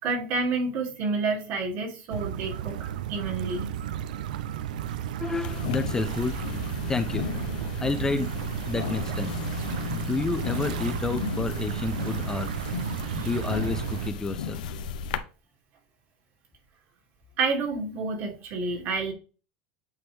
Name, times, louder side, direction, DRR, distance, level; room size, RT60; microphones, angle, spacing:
voice 1, 0.0-3.7 13.1-13.3 17.4-19.1, right 3 dB, 55° right, 1 dB, 2.6 m, -29 dB
sound 1, 2.1-14.1, right 10 dB, 85° right, 0.5 m, -33 dB
voice 2, 5.2-8.3 8.7-9.3 9.9-12.5 13.1-14.6, left 3 dB, 15° left, 9 dB, 0.6 m, -30 dB
sound 2, 5.4-15.2, left 7 dB, 85° left, 0.7 m, -34 dB
8.4 x 3.7 x 3.5 m, 0.34 s
supercardioid pair, 115°, 4 cm